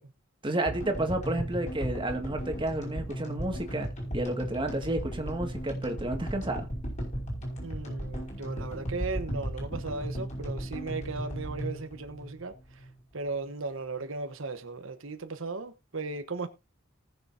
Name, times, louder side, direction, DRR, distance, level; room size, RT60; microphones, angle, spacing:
voice 1, 0.4-3.9 4.1-6.7, right 1 dB, 25° right, 1.9 m, -31 dB
sound 1, 0.6-13.0, equal, 35° left, 5.5 m, -36 dB
voice 2, 7.6-12.5 13.1-16.5, right 3 dB, 75° right, 1.1 m, -36 dB
19.0 x 6.9 x 2.7 m
head